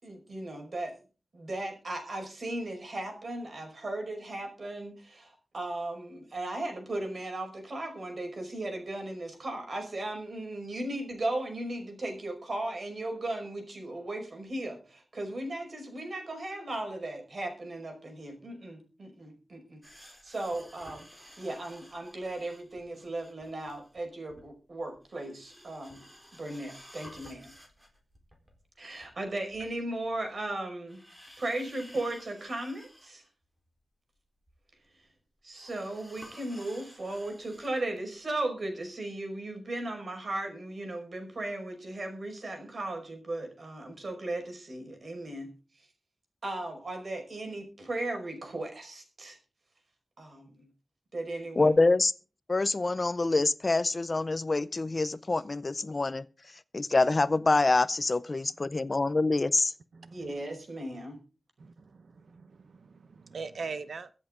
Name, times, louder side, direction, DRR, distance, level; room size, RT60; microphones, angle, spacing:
voice 1, 0.0-1.0 1.3-26.0 26.4-27.5 28.8-31.0 31.4-33.2 35.4-45.5 45.8-45.9 46.4-49.4 50.2-50.7 51.1-51.8 60.1-61.2, right 2 dB, 50° right, 5.3 m, -36 dB
sound 1, 19.8-24.0 24.3-24.5 24.8-30.5 30.9-33.3 33.6-33.7 34.5-34.6 35.5-37.8 38.2-38.3, equal, 5° right, 4.0 m, -53 dB
voice 2, 51.6-52.1 52.5-56.2 56.7-59.7, left 3 dB, 35° left, 0.5 m, -26 dB
voice 3, 59.9-60.4 61.6-64.1, right 4 dB, 70° right, 0.8 m, -42 dB
24.0 x 8.0 x 3.8 m
wide cardioid pair, 140°, 0 cm